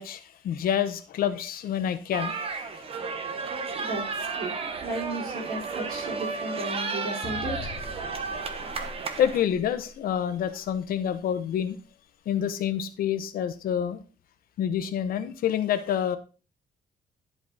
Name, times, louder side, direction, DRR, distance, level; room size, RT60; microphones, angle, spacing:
voice 1, 0.0-2.8 9.2-11.8 12.3-14.0 14.6-16.2, left 9 dB, 80° left, 1.0 m, -28 dB
sound 1, 2.1-9.4, right 4 dB, 40° right, 1.1 m, -33 dB
voice 2, 3.7-8.4, right 2 dB, 75° right, 3.6 m, -35 dB
sound 2, 7.2-9.9, left 4 dB, 30° left, 1.4 m, -41 dB
11.0 x 5.0 x 3.9 m
cardioid pair, 155°, 15 cm